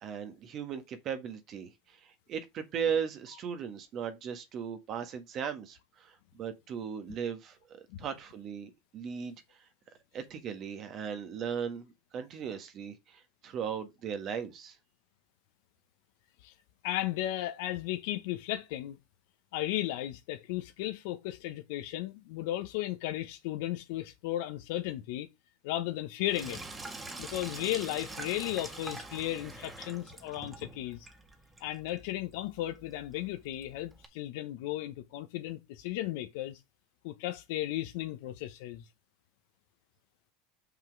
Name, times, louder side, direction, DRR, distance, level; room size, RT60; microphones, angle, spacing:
voice 1, 0.0-9.4 10.1-14.8, right 7 dB, 45° right, 1.5 m, -37 dB
voice 2, 16.8-19.0 19.5-25.3 25.6-26.6 27.2-31.1 31.6-36.6 37.0-38.9, left 14 dB, 70° left, 1.0 m, -35 dB
Sink (filling or washing), 26.2-34.1, right 2 dB, 15° right, 1.6 m, -45 dB
5.8 x 5.7 x 4.7 m
supercardioid pair, 115°, 0 cm